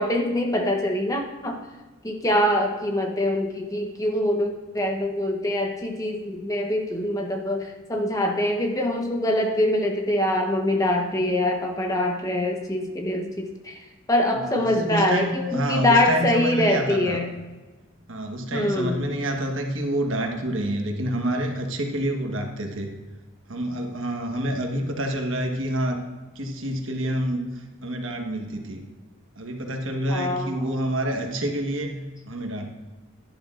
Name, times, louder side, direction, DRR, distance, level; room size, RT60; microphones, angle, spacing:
voice 1, 0.0-1.6 2.0-17.3 18.5-19.0 30.1-30.6, left 1 dB, 15° left, 3 dB, 0.9 m, -24 dB
voice 2, 14.3-17.2 18.1-22.9 23.5-26.0 26.3-28.9 29.4-31.9 32.3-32.7, right 1 dB, 70° right, 3 dB, 1.3 m, -28 dB
11.0 x 11.0 x 2.5 m, 1.2 s
head